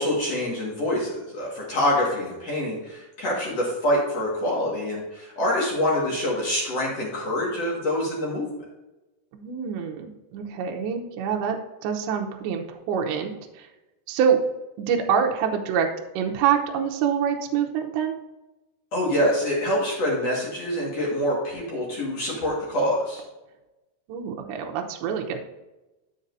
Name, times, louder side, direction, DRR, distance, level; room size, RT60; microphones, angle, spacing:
voice 1, 0.0-8.5 18.9-23.2, left 1 dB, 55° left, -4 dB, 1.9 m, -25 dB
voice 2, 9.3-13.3 14.1-14.4 14.8-15.9 16.2-18.1 24.1-25.4, right 7 dB, 80° right, 2 dB, 3.0 m, -25 dB
11.0 x 7.5 x 2.7 m, 1.0 s
omnidirectional pair, 5.5 m